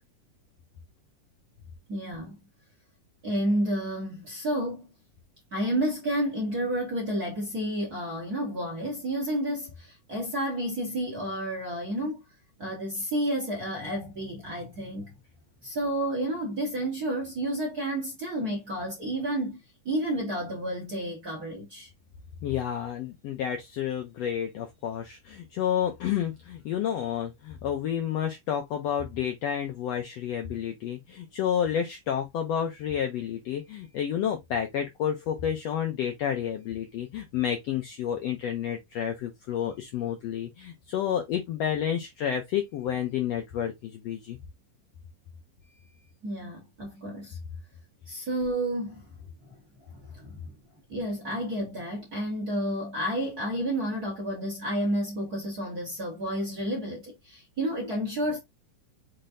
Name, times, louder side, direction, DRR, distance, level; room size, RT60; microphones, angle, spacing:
voice 1, 1.9-2.4 3.2-4.9 5.5-12.2 12.6-15.1 15.6-21.9 46.2-47.4 48.1-49.0 49.9-50.5 50.9-58.4, right 1 dB, 45° right, 1.2 m, -31 dB
voice 2, 22.4-44.4, left 9 dB, 85° left, 1.4 m, -30 dB
5.9 x 3.2 x 2.6 m
omnidirectional pair, 3.7 m